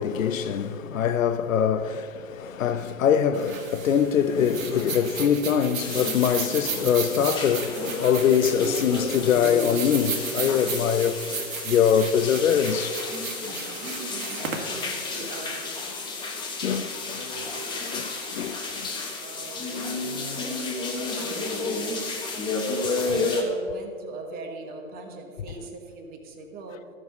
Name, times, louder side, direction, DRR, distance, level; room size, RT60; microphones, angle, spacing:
voice 1, 0.0-11.3 11.6-13.0 16.6-17.6 17.9-18.9 20.4-20.6 23.1-23.2, left 8 dB, 70° left, 0.8 m, -23 dB
sound 1, 3.3-15.8, right 5 dB, 75° right, 2.0 m, -35 dB
sound 2, 5.8-23.4, left 3 dB, 10° left, 1.1 m, -32 dB
voice 2, 13.4-16.6 17.1-18.5 19.2-22.0 22.9-26.8, right 3 dB, 20° right, 1.1 m, -43 dB
13.5 x 6.3 x 5.3 m
hypercardioid pair, 135°, 42 cm